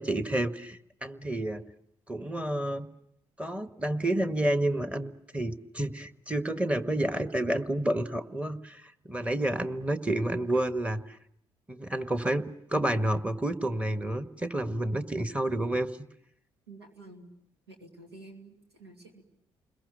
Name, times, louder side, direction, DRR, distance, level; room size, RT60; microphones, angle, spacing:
voice 1, 0.0-1.6 2.1-2.9 3.4-11.2 11.7-12.4 12.7-16.0, right 1 dB, 10° right, 10 dB, 1.5 m, -30 dB
voice 2, 16.7-17.3 17.7-19.2, right 2 dB, 90° right, 4 dB, 2.4 m, -50 dB
30.0 x 21.5 x 6.8 m, 0.73 s
figure-of-eight pair, 45°, 13 cm